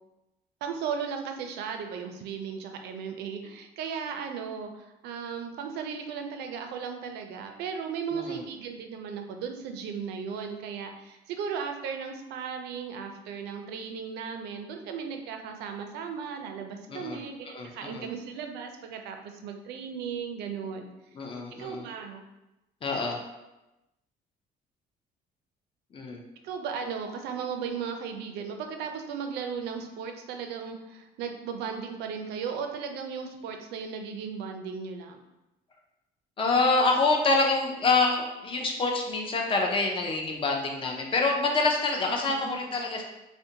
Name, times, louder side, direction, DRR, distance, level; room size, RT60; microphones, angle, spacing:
voice 1, 0.6-20.9 21.5-22.2 26.4-35.2 42.1-42.7, right 6 dB, 80° right, 5 dB, 0.4 m, -36 dB
voice 2, 8.1-8.4 16.9-17.2 17.5-18.1 21.1-21.9 22.8-23.2 25.9-26.2 36.4-43.0, left 3 dB, 30° left, 1 dB, 0.5 m, -26 dB
2.5 x 2.1 x 2.7 m, 0.98 s
cardioid pair, 110°, 17 cm